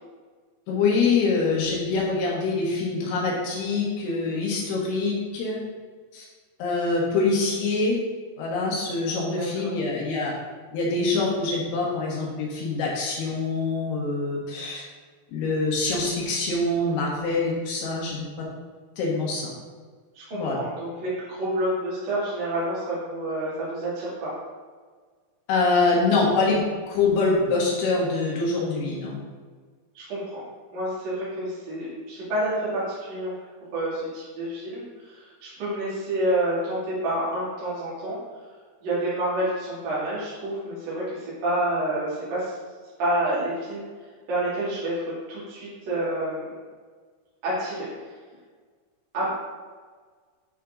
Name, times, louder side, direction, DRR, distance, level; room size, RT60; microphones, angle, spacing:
voice 1, 0.7-5.6 6.1-6.3 6.6-8.0 8.4-10.3 10.7-14.8 15.3-18.3 19.0-19.5 20.3-20.6 25.5-26.6 26.9-29.2, left 3 dB, 80° left, -3 dB, 3.5 m, -24 dB
voice 2, 9.3-9.8 20.1-24.3 29.9-30.4 30.7-33.3 33.7-38.2 38.8-42.5 43.0-43.8 44.3-46.6 47.4-47.9 49.1-49.3, right 1 dB, 45° right, -9 dB, 3.2 m, -28 dB
9.3 x 4.6 x 3.6 m, 1.5 s
omnidirectional pair, 4.6 m